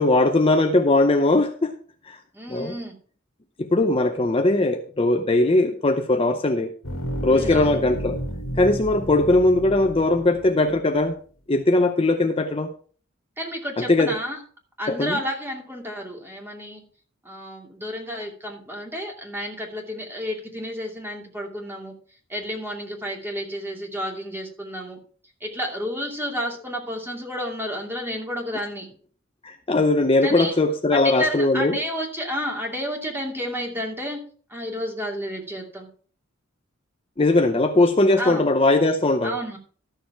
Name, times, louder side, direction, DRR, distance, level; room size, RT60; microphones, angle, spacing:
voice 1, 0.0-1.7 2.1-2.2 2.5-2.7 3.7-6.7 7.2-8.2 8.6-11.2 11.5-12.7 13.8-14.1 14.9-15.2 29.4-31.8 37.2-39.4, left 2 dB, 25° left, 5 dB, 0.7 m, -20 dB
voice 2, 2.3-3.0 7.3-7.7 13.4-14.4 14.8-16.8 17.2-21.9 22.3-25.0 25.4-28.9 30.2-30.6 30.9-34.2 34.5-35.9 38.2-38.4 39.2-39.6, equal, 10° right, 0 dB, 2.6 m, -31 dB
sound 1, 6.8-10.7, equal, 75° left, 1.7 m, -32 dB
13.0 x 6.8 x 4.5 m, 0.43 s
head